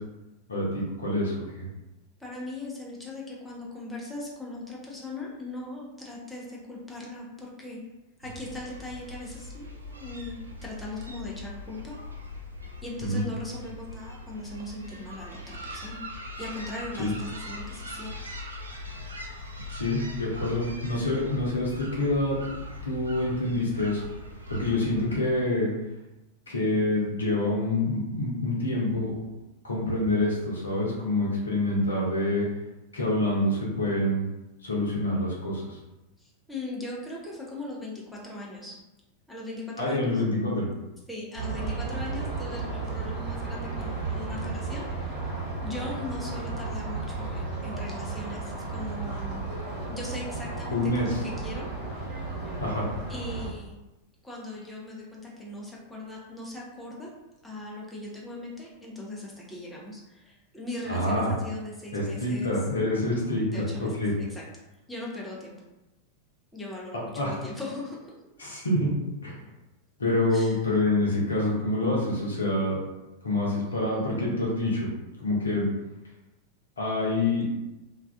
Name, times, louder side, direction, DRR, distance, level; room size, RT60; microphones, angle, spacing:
voice 1, 0.5-1.7 13.0-13.2 17.0-17.1 19.7-24.0 24.5-25.7 26.5-29.4 29.6-32.5 32.9-34.3 34.6-35.8 39.8-40.7 50.7-51.2 52.6-52.8 60.9-61.3 61.9-64.1 66.9-67.3 68.4-68.9 69.2-69.4 70.0-72.8 73.2-74.9 75.2-75.7 76.8-77.5, left 1 dB, 75° left, -4 dB, 0.7 m, -27 dB
voice 2, 2.2-7.8 8.2-11.9 12.8-16.0 16.4-18.2 36.2-38.8 39.3-40.2 41.1-45.3 45.6-49.4 49.9-51.7 53.1-53.8 54.2-57.1 57.4-62.6 63.5-64.4 64.9-65.5 66.5-68.2 70.3-70.6, left 2 dB, 5° left, -4 dB, 0.5 m, -39 dB
sound 1, 8.2-25.2, left 1 dB, 75° right, 0.4 m, -41 dB
sound 2, 41.3-53.5, right 3 dB, 45° right, 1.0 m, -34 dB
2.3 x 2.3 x 2.3 m, 1.0 s
figure-of-eight pair, 90°, 0 cm